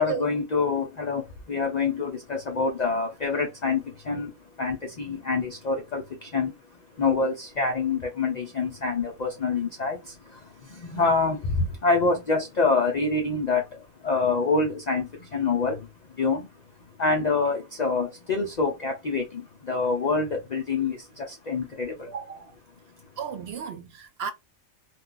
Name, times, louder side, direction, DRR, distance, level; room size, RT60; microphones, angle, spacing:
voice 1, 0.0-22.1 22.8-23.1, left 4 dB, 55° left, 0.4 m, -27 dB
voice 2, 22.1-22.5 23.2-24.3, right 7 dB, 65° right, 0.6 m, -34 dB
2.3 x 2.3 x 3.7 m
omnidirectional pair, 1.4 m